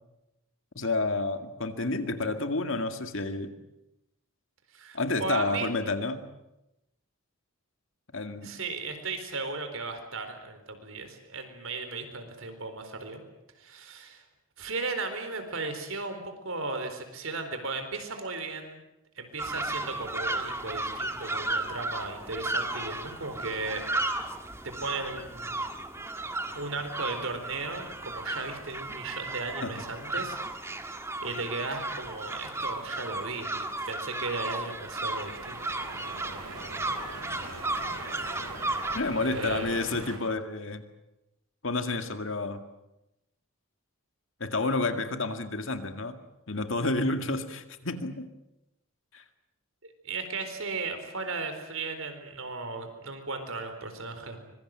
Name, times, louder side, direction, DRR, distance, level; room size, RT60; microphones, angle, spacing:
voice 1, 0.8-3.6 4.9-6.3 8.1-8.6 29.6-29.7 30.2-30.3 39.0-40.8 41.6-42.6 44.4-46.2 46.5-48.3 49.1-49.2, left 2 dB, 60° left, 8 dB, 2.1 m, -30 dB
voice 2, 4.7-5.7 8.4-13.2 13.6-14.2 14.6-18.8 19.2-23.9 24.6-25.6 26.5-30.4 31.2-35.6 39.2-39.7 49.8-54.5, right 3 dB, 65° right, 7 dB, 4.2 m, -36 dB
sound 1, 19.4-39.0, right 2 dB, 10° right, 1.6 m, -34 dB
sound 2, 34.9-40.2, right 2 dB, 90° right, 5.9 m, -42 dB
25.0 x 22.5 x 7.7 m, 0.90 s
head